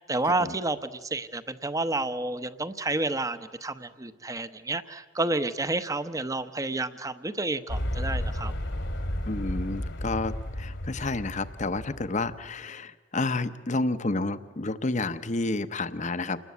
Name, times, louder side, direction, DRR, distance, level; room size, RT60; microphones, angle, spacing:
voice 1, 0.0-8.5, right 2 dB, 15° right, 12 dB, 0.9 m, -30 dB
sound 1, 7.7-12.5, left 1 dB, 70° left, 2.3 m, -33 dB
voice 2, 9.3-16.4, left 2 dB, 40° left, 12 dB, 1.0 m, -30 dB
28.5 x 20.5 x 8.4 m, 1.4 s
head